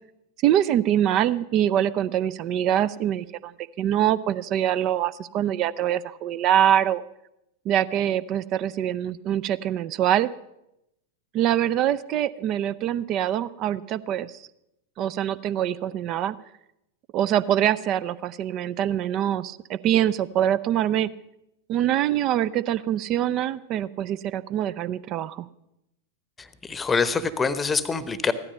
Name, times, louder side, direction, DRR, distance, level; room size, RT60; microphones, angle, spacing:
voice 1, 0.4-3.5 3.8-7.0 7.7-10.3 11.3-14.4 15.0-16.4 17.1-21.1 21.7-25.5, right 11 dB, 35° right, 19 dB, 0.5 m, -24 dB
voice 2, 26.4-28.3, left 5 dB, 15° left, 14 dB, 0.9 m, -25 dB
15.5 x 13.0 x 5.4 m, 0.85 s
figure-of-eight pair, 90°, 0 cm